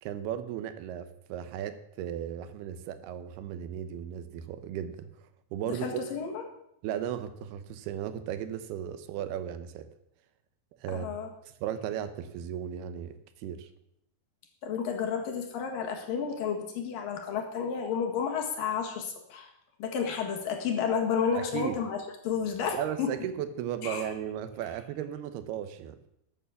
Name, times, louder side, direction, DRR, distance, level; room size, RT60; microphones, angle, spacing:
voice 1, 0.0-5.1 5.5-5.9 6.8-9.9 10.8-11.1 11.4-13.7 21.3-21.8 22.7-26.0, right 10 dB, 80° right, 11 dB, 2.9 m, -36 dB
voice 2, 5.7-6.4 10.9-11.3 14.6-19.5 19.8-22.0 22.2-23.2 23.8-24.1, left 6 dB, 65° left, 3 dB, 3.1 m, -31 dB
13.0 x 8.9 x 7.0 m, 0.80 s
omnidirectional pair, 4.6 m